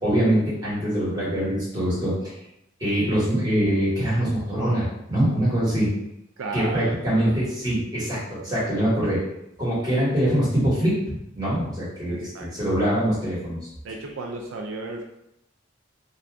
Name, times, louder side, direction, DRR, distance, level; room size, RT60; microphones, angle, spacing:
voice 1, 0.0-2.1 2.8-5.9 6.5-9.2 9.6-13.6, right 1 dB, 20° right, -9 dB, 1.3 m, -23 dB
voice 2, 6.4-7.0 7.2-7.4 12.1-12.5 13.8-15.0, right 3 dB, 85° right, 1 dB, 0.4 m, -34 dB
2.6 x 2.3 x 3.4 m, 0.82 s
head